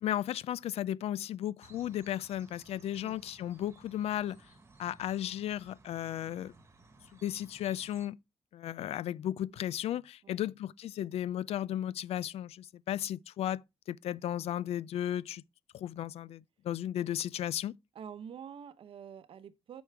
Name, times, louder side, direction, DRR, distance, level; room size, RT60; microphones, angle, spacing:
voice 1, 0.0-4.4 4.8-6.5 7.2-8.2 8.5-13.6 13.9-15.4 15.7-17.7, left 11 dB, 90° left, 0.4 m, -35 dB
sound 1, 1.6-8.1, right 3 dB, 25° right, 1.3 m, -59 dB
voice 2, 17.9-19.8, right 8 dB, 65° right, 0.8 m, -47 dB
8.2 x 6.2 x 3.3 m
wide cardioid pair, 175°, 10 cm